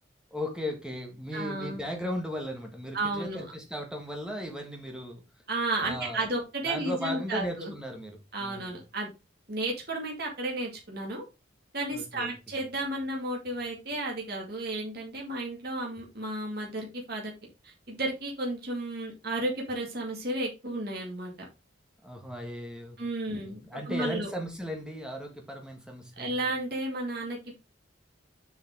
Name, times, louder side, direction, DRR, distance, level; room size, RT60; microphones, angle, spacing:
voice 1, 0.3-5.2 5.8-6.2 6.7-8.8 11.9-12.3 22.0-23.0 23.3-26.4, equal, 5° right, 1.8 m, -36 dB
voice 2, 1.3-1.8 2.9-3.4 5.5-7.7 8.3-9.1 9.5-11.2 11.7-17.3 17.6-21.5 23.0-24.3 26.2-27.5, right 2 dB, 50° right, 2.2 m, -33 dB
6.9 x 5.6 x 3.7 m
head